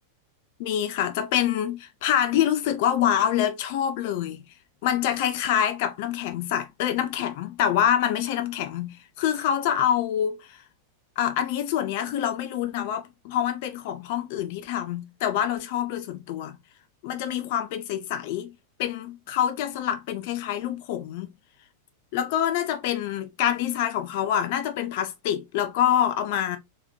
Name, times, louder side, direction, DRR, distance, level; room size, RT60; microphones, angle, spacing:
voice 1, 0.6-4.4 4.8-10.6 11.2-16.6 17.0-18.5 18.8-21.3 22.1-26.6, left 10 dB, 50° left, 0.5 m, -26 dB
3.9 x 3.0 x 2.6 m
figure-of-eight pair, 90°, 0 cm